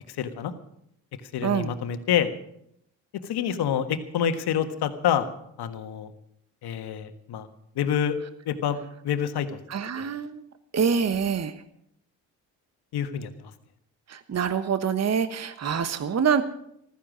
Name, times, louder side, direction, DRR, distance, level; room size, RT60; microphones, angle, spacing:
voice 1, 0.2-0.5 1.3-2.3 3.2-5.2 5.6-6.1 6.6-7.5 7.8-8.2 8.5-8.8 9.0-9.5 10.0-10.1 12.9-13.5, left 9 dB, 65° left, 9 dB, 1.6 m, -27 dB
voice 2, 1.4-1.7 9.7-10.5 10.7-11.5 14.1-16.4, right 6 dB, 35° right, 11 dB, 1.2 m, -25 dB
15.0 x 13.5 x 6.2 m, 0.73 s
hypercardioid pair, 55°, 43 cm